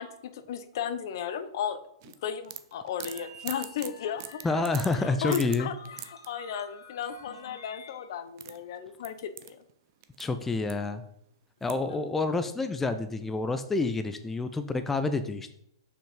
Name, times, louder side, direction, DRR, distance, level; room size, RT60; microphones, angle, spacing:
voice 1, 0.0-1.8 2.0-4.4 4.9-9.6 11.7-12.0, left 8 dB, 55° left, 11 dB, 0.9 m, -35 dB
sound 1, 2.0-6.3 7.9-8.0 8.2-10.2 10.5-11.1 11.6-12.0, right 13 dB, 45° right, 0.7 m, -42 dB
sound 2, 3.0-8.1, left 1 dB, 70° left, 2.0 m, -50 dB
voice 2, 4.4-5.7 10.2-11.0 11.6-15.5, left 3 dB, 10° left, 9 dB, 0.5 m, -28 dB
7.0 x 6.1 x 5.4 m, 0.72 s
figure-of-eight pair, 110°, 3 cm